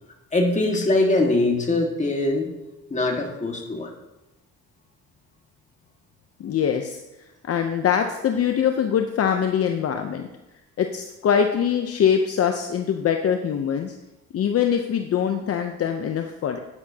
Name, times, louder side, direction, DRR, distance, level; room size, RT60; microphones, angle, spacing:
voice 1, 0.3-2.5 2.9-3.9, left 2 dB, 25° left, 1 dB, 1.9 m, -22 dB
voice 2, 6.4-7.0 7.5-10.3 10.8-13.9 14.3-16.6, left 8 dB, 50° left, 5 dB, 0.8 m, -23 dB
11.0 x 9.7 x 2.9 m, 1.0 s
cardioid pair, 90°, 30 cm